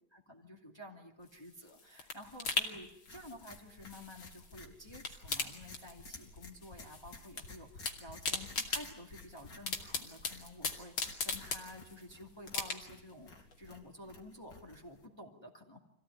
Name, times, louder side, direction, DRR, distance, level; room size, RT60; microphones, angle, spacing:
voice 1, 0.1-15.8, left 1 dB, 10° left, 0 dB, 2.6 m, -51 dB
sound 1, 1.3-4.6 4.9-6.4 6.6-7.4 7.7-12.0 12.5-13.1 13.5-13.6, left 4 dB, 80° left, 3.4 m, -39 dB
sound 2, 3.1-15.1, left 3 dB, 60° left, 3.5 m, -54 dB
27.0 x 16.5 x 9.9 m, 0.81 s
omnidirectional pair, 2.2 m